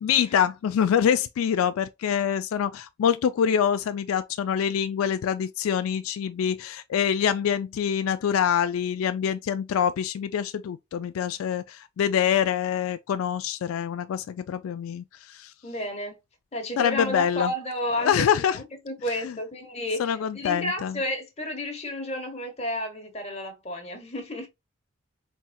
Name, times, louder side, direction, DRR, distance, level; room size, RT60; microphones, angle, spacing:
voice 1, 0.0-15.5 16.8-17.5 18.0-18.6 19.2-19.3 20.0-21.0, left 8 dB, 80° left, 0.3 m, -25 dB
voice 2, 15.6-16.2 16.5-24.5, left 1 dB, 30° left, 1.1 m, -32 dB
4.2 x 3.5 x 2.2 m
head